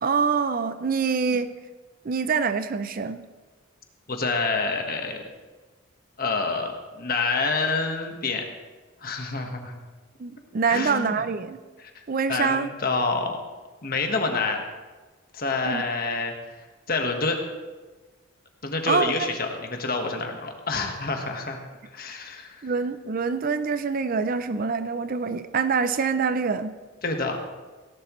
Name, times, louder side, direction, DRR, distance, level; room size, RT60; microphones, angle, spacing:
voice 1, 0.0-1.5 2.0-3.2 10.2-11.6 12.1-12.7 15.6-15.8 18.9-19.3 22.6-26.8, right 5 dB, 40° right, 11 dB, 0.4 m, -25 dB
voice 2, 4.1-5.2 6.2-8.4 9.0-9.8 10.7-11.2 11.8-12.0 12.3-13.4 13.8-14.6 15.3-16.3 16.9-17.4 18.6-21.6 21.9-22.7 27.0-27.4, left 3 dB, 45° left, 3 dB, 1.4 m, -27 dB
17.0 x 11.0 x 3.1 m, 1.3 s
head